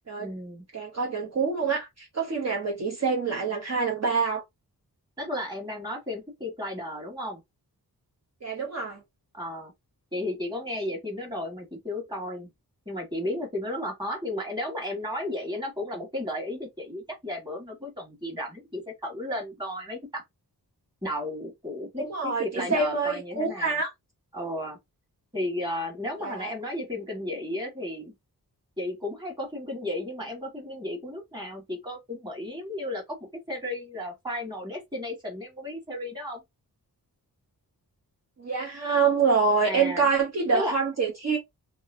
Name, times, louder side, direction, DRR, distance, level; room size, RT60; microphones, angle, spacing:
voice 1, 0.2-0.6 5.2-7.4 9.3-9.7 10.1-12.5 12.8-20.2 21.0-23.8 24.3-24.8 25.3-28.1 28.8-36.4 39.6-40.1 40.5-40.8, left 1 dB, 10° right, 1.6 m, -34 dB
voice 2, 0.7-4.4 8.4-9.0 22.0-23.9 26.2-26.5 38.4-41.4, right 5 dB, 45° right, 0.9 m, -26 dB
3.0 x 2.7 x 2.6 m
wide cardioid pair, 95°, 37 cm